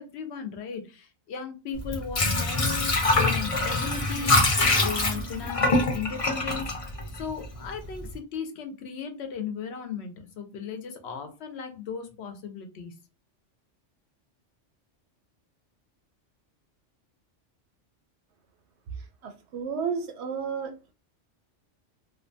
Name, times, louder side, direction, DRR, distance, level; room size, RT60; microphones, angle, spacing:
voice 1, 0.0-4.4 4.8-12.9, left 6 dB, 65° left, 0.8 m, -36 dB
Water / Sink (filling or washing), 1.8-7.6 8.0-8.1, left 2 dB, 35° left, 0.6 m, -24 dB
voice 2, 18.9-20.8, right 6 dB, 70° right, 0.8 m, -32 dB
2.6 x 2.2 x 2.5 m
omnidirectional pair, 1.2 m